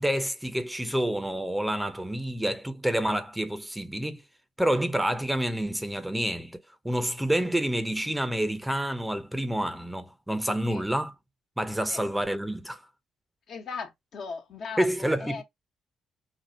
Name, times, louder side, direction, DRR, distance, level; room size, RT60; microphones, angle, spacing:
voice 1, 0.0-4.2 4.6-11.1 11.6-12.8 14.8-15.4, right 1 dB, 5° right, 0.8 m, -28 dB
voice 2, 13.5-15.4, left 5 dB, 65° left, 1.3 m, -38 dB
4.4 x 2.4 x 4.2 m
hypercardioid pair, 55°, 0 cm